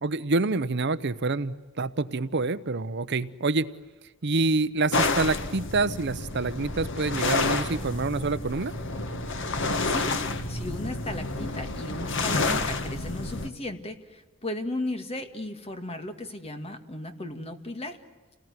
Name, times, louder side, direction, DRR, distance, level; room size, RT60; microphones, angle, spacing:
voice 1, 0.0-3.7 4.2-8.7, right 3 dB, 55° right, 14 dB, 0.8 m, -27 dB
sound 1, 4.9-13.5, left 3 dB, 60° left, 1.8 m, -29 dB
voice 2, 9.8-10.2 10.5-18.0, left 1 dB, 30° left, 7 dB, 2.1 m, -35 dB
29.5 x 19.0 x 9.7 m, 1.3 s
head